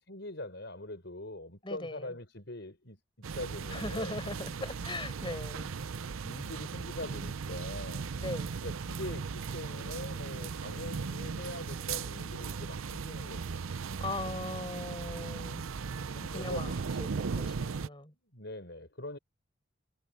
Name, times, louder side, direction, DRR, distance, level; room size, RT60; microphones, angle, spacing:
voice 1, 0.1-3.0 3.3-4.2 6.2-8.1 8.6-13.8 16.3-16.8 17.3-17.5 17.9-19.2, left 1 dB, 60° left, 5.5 m, -43 dB
voice 2, 1.6-2.1 3.7-5.7 8.2-8.5 14.0-15.6 16.1-18.1, left 2 dB, 25° left, 7.0 m, -39 dB
sound 1, 3.2-17.9, right 5 dB, 85° right, 0.6 m, -37 dB
head